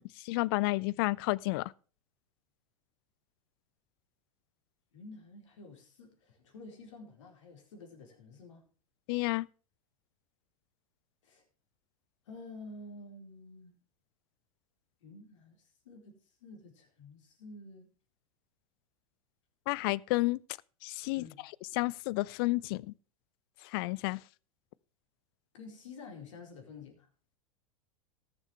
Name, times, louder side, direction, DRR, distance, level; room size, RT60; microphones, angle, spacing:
voice 1, 0.0-1.7 9.1-9.5 19.7-20.4 20.8-21.3 21.7-22.9 23.6-24.2, left 22 dB, 40° left, 0.4 m, -31 dB
voice 2, 4.9-8.6 11.2-11.4 12.3-13.7 15.0-17.9 21.1-21.4 25.5-27.1, left 3 dB, 60° left, 4.3 m, -50 dB
19.0 x 7.2 x 3.3 m
figure-of-eight pair, 90°, 18 cm